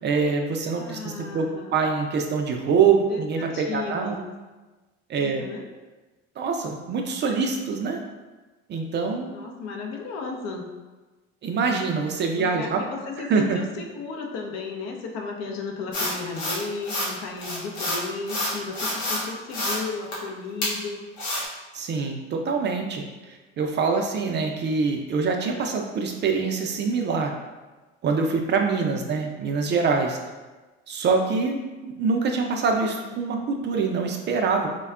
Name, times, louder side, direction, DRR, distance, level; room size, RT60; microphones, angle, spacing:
voice 1, 0.0-4.3 5.1-5.4 6.4-8.0 8.7-9.4 11.4-12.8 13.3-13.6 21.7-27.3 28.0-30.2 30.9-34.7, right 5 dB, 35° right, 3 dB, 0.4 m, -25 dB
voice 2, 0.7-1.8 3.1-4.1 5.2-5.6 9.3-10.7 12.3-21.1 28.8-29.2, left 4 dB, 60° left, 2 dB, 0.6 m, -34 dB
sound 1, 15.9-17.1 17.4-19.2 19.5-19.8 20.1-20.2 20.6-20.7 21.2-21.4, left 1 dB, 85° left, 0.8 m, -28 dB
3.3 x 2.1 x 2.3 m, 1.2 s
hypercardioid pair, 70°, 31 cm